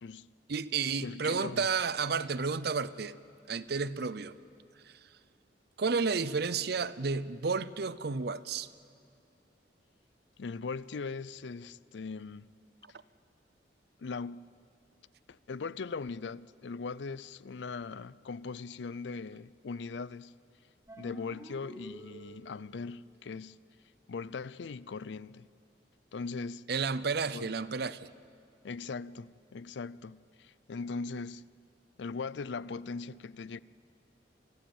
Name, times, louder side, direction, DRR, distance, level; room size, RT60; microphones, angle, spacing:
voice 1, 0.5-3.2 3.5-4.3 5.8-8.7 26.7-28.1, right 5 dB, 60° right, 0.7 m, -31 dB
voice 2, 1.0-1.7 10.4-12.5 14.0-14.5 15.3-20.4 21.0-23.6 24.1-25.5 26.1-26.7 27.3-27.5 28.6-31.5 32.0-33.6, left 4 dB, 75° left, 0.5 m, -40 dB
sound 1, 20.9-22.8, right 1 dB, 15° right, 2.2 m, -49 dB
24.0 x 15.5 x 9.0 m
head